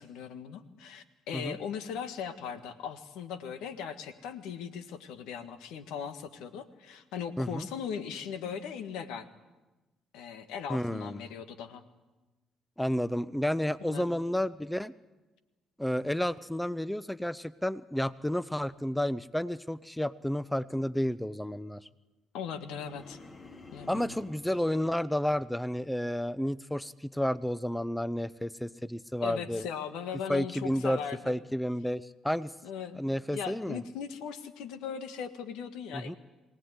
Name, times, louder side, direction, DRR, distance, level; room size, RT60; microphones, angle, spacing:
voice 1, 0.0-9.3 10.1-11.8 13.8-14.0 22.3-23.2 23.7-24.0 29.2-31.4 32.6-33.0 33.3-36.2, left 7 dB, 80° left, 10 dB, 1.6 m, -39 dB
voice 2, 7.4-7.7 10.7-11.3 12.8-14.9 15.8-21.8 23.9-29.6 30.3-31.0 31.3-32.5 33.0-33.8 35.9-36.2, equal, 5° left, 17 dB, 0.8 m, -31 dB
sound 1, 22.5-24.6, left 3 dB, 40° left, 4.3 m, -50 dB
23.5 x 17.5 x 9.8 m, 1.1 s
supercardioid pair, 55°, 0 cm